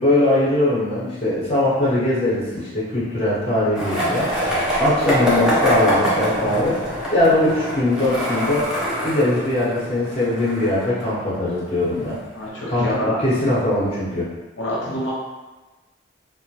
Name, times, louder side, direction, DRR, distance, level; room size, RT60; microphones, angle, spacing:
voice 1, 0.0-4.3 4.8-6.8 7.1-8.7 9.0-12.2 12.7-14.3, left 1 dB, 35° left, -8 dB, 0.9 m, -21 dB
Skateboard, 3.8-11.7, equal, 5° right, 0.5 m, -24 dB
voice 2, 12.3-13.2 14.6-15.1, left 1 dB, 75° left, -7 dB, 0.6 m, -26 dB
2.2 x 2.1 x 2.8 m, 1.2 s
head